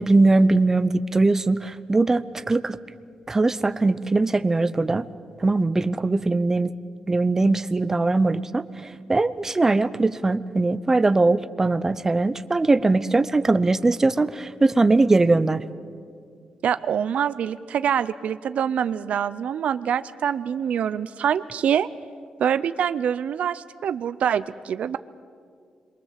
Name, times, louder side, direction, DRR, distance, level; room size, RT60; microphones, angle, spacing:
voice 1, 0.0-2.8 3.3-5.1 5.4-6.7 7.1-8.6 9.1-15.6, right 3 dB, 20° right, 14 dB, 0.7 m, -20 dB
voice 2, 16.6-21.9 22.4-25.0, right 8 dB, 70° right, 13 dB, 0.6 m, -25 dB
27.0 x 22.5 x 7.5 m, 2.2 s
wide cardioid pair, 140°, 2 cm